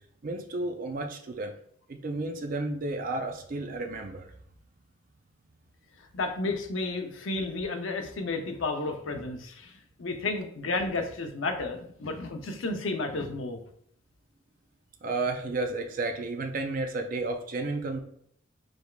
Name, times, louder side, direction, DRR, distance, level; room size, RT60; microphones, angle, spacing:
voice 1, 0.2-1.5 1.9-4.3 15.0-18.0, right 2 dB, 45° right, 4 dB, 0.4 m, -32 dB
voice 2, 6.1-13.6, left 3 dB, 80° left, 5 dB, 0.6 m, -32 dB
5.1 x 3.3 x 2.3 m, 0.67 s
head